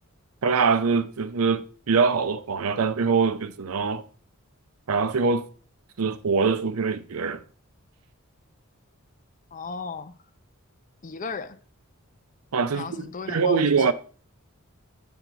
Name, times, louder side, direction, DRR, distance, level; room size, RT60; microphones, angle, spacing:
voice 1, 0.4-4.0 4.9-5.5 6.0-7.4 12.5-13.9, right 5 dB, 85° right, 0.6 m, -23 dB
voice 2, 9.5-10.1 11.0-11.6 12.7-13.9, left 4 dB, 35° left, 0.5 m, -35 dB
7.9 x 6.0 x 3.9 m
head